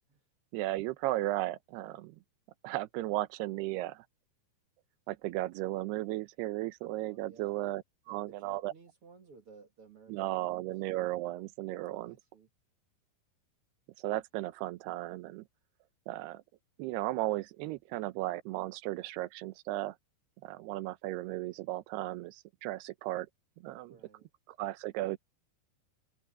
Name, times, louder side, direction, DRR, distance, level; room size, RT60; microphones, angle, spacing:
voice 1, 0.5-2.2 2.6-4.1 5.1-8.7 10.1-12.2 14.0-15.4 16.1-16.4 16.8-20.0 20.4-23.3 23.6-23.9 24.5-25.2, right 16 dB, 75° right, 2.7 m, -35 dB
voice 2, 7.0-7.5 8.1-10.7 11.9-12.5 23.9-24.3, right 5 dB, 50° right, 1.8 m, -57 dB
open air
omnidirectional pair, 5.3 m